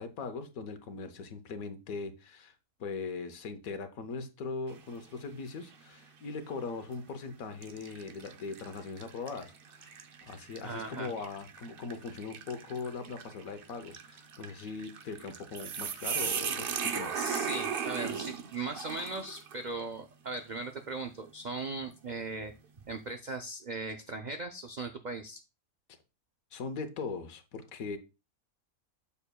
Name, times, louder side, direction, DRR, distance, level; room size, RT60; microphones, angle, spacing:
voice 1, 0.0-2.5 2.8-9.9 10.2-17.2 26.5-28.0, left 4 dB, 75° left, 1.3 m, -40 dB
sound 1, 4.7-5.2 5.7-5.8 6.8-7.0 7.6-19.6, right 7 dB, 55° right, 0.7 m, -38 dB
voice 2, 10.6-11.1 17.1-22.5 22.9-25.4, right 3 dB, 90° right, 0.4 m, -38 dB
7.0 x 7.0 x 2.2 m
omnidirectional pair, 1.5 m